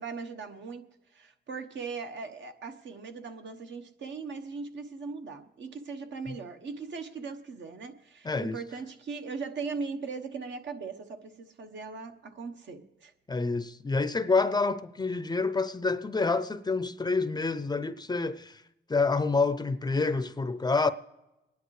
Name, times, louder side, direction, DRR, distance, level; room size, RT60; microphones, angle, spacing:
voice 1, 0.0-13.1, right 4 dB, 70° right, 1.1 m, -39 dB
voice 2, 8.2-8.6 13.3-18.6 18.9-20.9, left 3 dB, 20° left, 0.5 m, -28 dB
28.0 x 10.0 x 3.2 m
cardioid pair, 110°, 20 cm